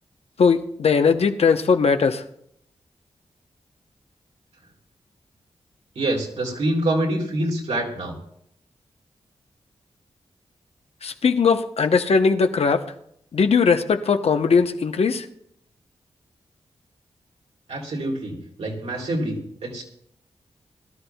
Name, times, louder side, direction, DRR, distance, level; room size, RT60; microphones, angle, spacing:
voice 1, 0.4-2.2 11.0-12.9 13.3-15.3, left 5 dB, 65° left, 7 dB, 0.9 m, -19 dB
voice 2, 5.9-8.1 17.7-19.8, right 1 dB, 75° right, -1 dB, 3.1 m, -26 dB
22.0 x 12.5 x 2.3 m, 0.71 s
wide cardioid pair, 90°, 11 cm